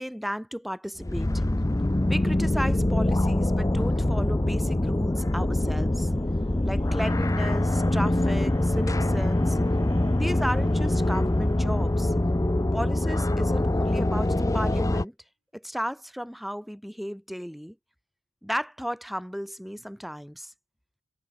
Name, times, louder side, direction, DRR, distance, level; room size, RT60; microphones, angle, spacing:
voice 1, 0.0-1.4 2.1-6.1 6.6-9.6 10.1-12.1 12.7-15.1 15.5-17.8 18.4-20.5, equal, ahead, 4.0 m, -34 dB
sound 1, 1.0-15.0, left 1 dB, 15° left, 0.5 m, -24 dB
sound 2, 5.2-13.4, right 2 dB, 85° right, 6.1 m, -56 dB
head